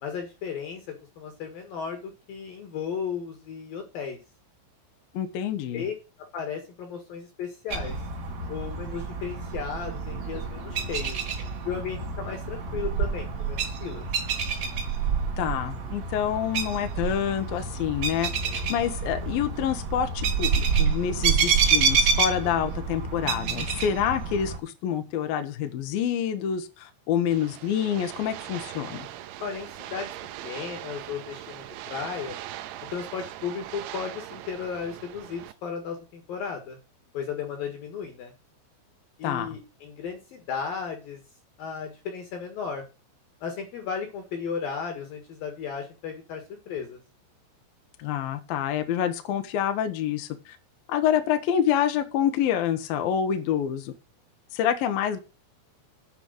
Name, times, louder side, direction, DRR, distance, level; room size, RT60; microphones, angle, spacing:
voice 1, 0.0-4.2 5.7-8.0 8.5-11.2 11.6-14.1 29.4-30.1 30.4-32.4 32.9-36.8 37.1-38.3 39.2-41.2 41.6-42.8 43.4-47.0, left 6 dB, 60° left, 2.6 m, -35 dB
voice 2, 5.1-5.8 15.4-29.1 39.2-39.6 48.0-50.6 50.9-53.9 54.5-55.2, left 9 dB, 75° left, 2.2 m, -27 dB
sound 1, 7.7-24.6, right 5 dB, 55° right, 2.0 m, -28 dB
sound 2, 27.3-35.5, right 13 dB, 80° right, 2.8 m, -40 dB
9.2 x 5.3 x 7.7 m
omnidirectional pair, 6.0 m